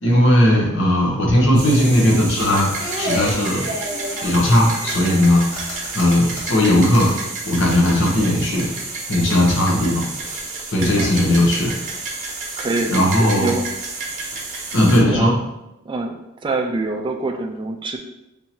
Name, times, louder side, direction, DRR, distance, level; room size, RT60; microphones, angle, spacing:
voice 1, 0.0-2.7 3.0-3.6 4.2-5.4 5.9-7.1 7.5-8.7 9.1-10.0 10.7-11.7 12.9-13.5 14.7-15.3, left 1 dB, 65° left, -2 dB, 1.0 m, -17 dB
sound 1, 1.5-15.0, right 3 dB, 40° right, 1.0 m, -30 dB
sound 2, 2.8-7.2 7.5-8.0 8.6-8.8 9.1-9.5 10.0-10.6 11.2-11.9, left 1 dB, 35° left, 1.4 m, -31 dB
voice 2, 11.0-11.3 11.9-12.0 12.6-13.7 15.1-15.4 15.8-18.0, right 2 dB, 25° right, 3 dB, 0.3 m, -26 dB
3.6 x 2.9 x 4.3 m, 0.89 s
head